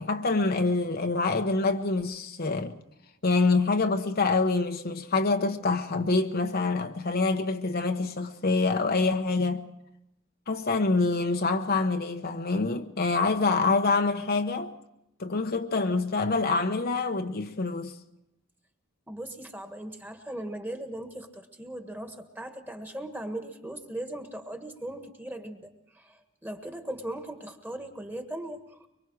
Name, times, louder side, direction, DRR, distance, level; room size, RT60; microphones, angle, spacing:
voice 1, 0.0-2.8 3.2-9.6 10.5-14.7 15.2-17.9, left 3 dB, 45° left, 0.9 m, -26 dB
voice 2, 19.1-28.9, right 1 dB, 10° right, 1.7 m, -39 dB
24.0 x 24.0 x 4.8 m
head